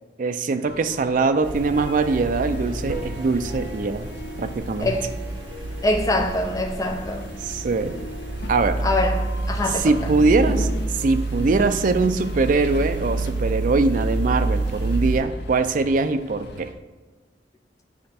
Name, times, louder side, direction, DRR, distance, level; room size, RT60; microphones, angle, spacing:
voice 1, 0.2-4.1 4.4-4.9 7.4-8.0 8.5-8.8 9.7-10.7 10.9-16.7, right 3 dB, 45° right, 0.4 m, -22 dB
Harp, 0.6-11.8, right 1 dB, 25° right, 2.1 m, -43 dB
sound 1, 0.7-16.7, left 2 dB, 60° left, 0.6 m, -39 dB
sound 2, 1.4-15.2, right 2 dB, 75° right, 0.9 m, -29 dB
voice 2, 4.8-5.2 5.8-7.4 8.8-9.9, left 1 dB, 20° left, 0.6 m, -24 dB
9.6 x 3.2 x 4.3 m
head